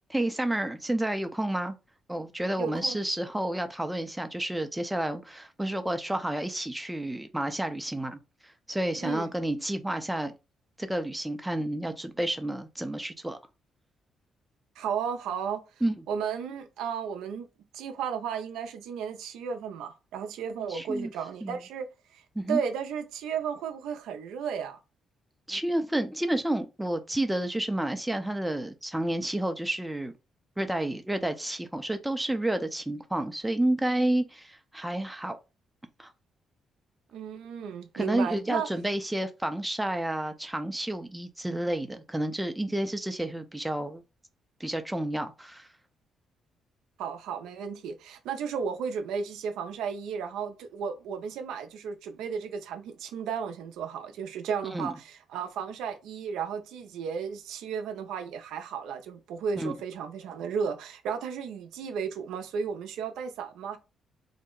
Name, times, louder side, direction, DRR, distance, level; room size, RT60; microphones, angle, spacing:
voice 1, 0.1-1.7 2.1-8.2 8.7-10.3 10.8-13.4 15.8-15.9 20.7-21.1 21.4-21.6 22.4-22.6 25.5-30.1 30.6-35.4 36.0-36.1 37.9-44.0 44.6-45.7 54.7-54.9 59.6-59.7, right 1 dB, 5° right, 0.4 m, -30 dB
voice 2, 2.6-3.0 9.0-9.3 14.8-15.6 16.1-17.5 17.7-21.9 22.1-24.8 37.1-38.7 47.0-63.8, right 7 dB, 85° right, 0.4 m, -34 dB
2.7 x 2.1 x 3.7 m
cardioid pair, 90°, 0 cm